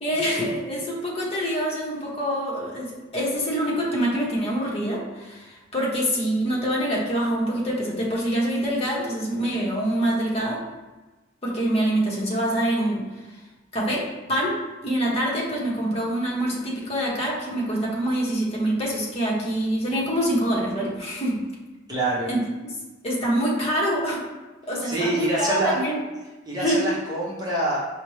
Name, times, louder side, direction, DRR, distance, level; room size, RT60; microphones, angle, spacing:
voice 1, 0.0-10.6 11.4-13.0 13.7-14.5 14.8-21.4 22.3-22.4 23.0-24.2 24.7-26.0 26.6-26.8, right 1 dB, 30° left, -4 dB, 0.9 m, -25 dB
voice 2, 21.9-22.3 24.8-25.8 26.5-27.8, right 2 dB, 20° right, -7 dB, 0.9 m, -25 dB
5.0 x 2.1 x 3.1 m, 1.2 s
head